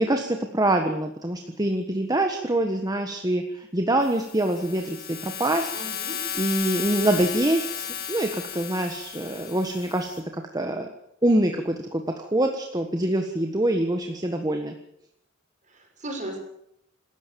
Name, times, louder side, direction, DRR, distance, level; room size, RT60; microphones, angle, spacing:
voice 1, 0.0-5.7 6.3-10.9 11.2-14.7, right 1 dB, 20° right, 4 dB, 1.5 m, -25 dB
sound 1, 4.0-10.2, left 8 dB, 50° left, 4.1 m, -34 dB
voice 2, 5.7-6.2 15.7-16.4, right 1 dB, 40° right, 3 dB, 6.1 m, -36 dB
26.5 x 13.5 x 7.1 m, 0.76 s
head